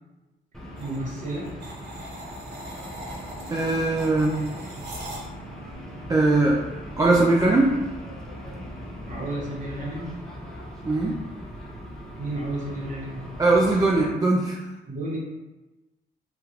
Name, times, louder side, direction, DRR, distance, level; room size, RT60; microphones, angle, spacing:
sound 1, 0.5-14.1, equal, 5° left, 0.7 m, -39 dB
voice 1, 0.8-1.5 9.1-10.1 12.2-13.4 14.9-15.2, right 1 dB, 40° right, -4 dB, 1.3 m, -32 dB
sound 2, 0.8-5.6, right 1 dB, 60° right, 0.9 m, -41 dB
voice 2, 3.5-4.4 6.1-6.6 7.0-7.8 10.9-11.2 13.4-14.6, right 2 dB, 20° right, -3 dB, 0.4 m, -20 dB
3.6 x 2.4 x 2.9 m, 1.1 s
cardioid pair, 90°, 20 cm